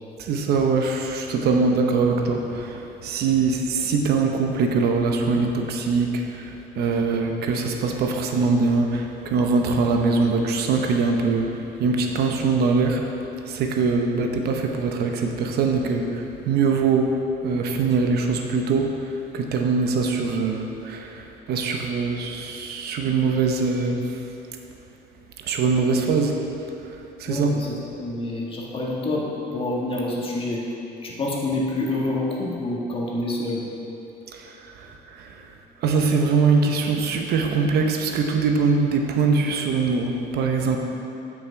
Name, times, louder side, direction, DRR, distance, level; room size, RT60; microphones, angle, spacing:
voice 1, 0.2-13.0 13.4-19.0 19.3-24.0 25.4-26.4 27.2-27.5 34.3-35.4 35.8-40.8, right 4 dB, 70° right, 3 dB, 0.9 m, -22 dB
voice 2, 27.3-29.2 29.5-30.6 31.0-33.6, left 2 dB, 35° left, -3 dB, 1.7 m, -27 dB
9.0 x 6.0 x 4.7 m, 2.8 s
cardioid pair, 110°, 17 cm